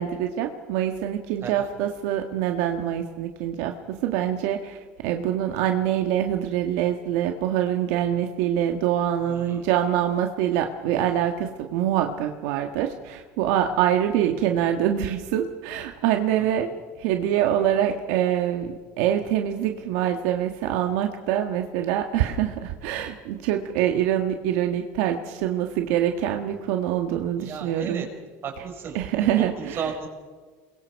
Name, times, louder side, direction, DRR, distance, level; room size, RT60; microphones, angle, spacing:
voice 1, 0.0-4.8 5.0-16.7 17.0-28.1 28.9-29.8, right 10 dB, 70° right, 4 dB, 1.6 m, -25 dB
voice 2, 9.2-9.7 16.4-16.8 27.4-28.1 28.4-30.1, right 6 dB, 30° right, 3 dB, 5.2 m, -35 dB
28.5 x 22.0 x 4.7 m, 1.4 s
cardioid pair, 150°, 8 cm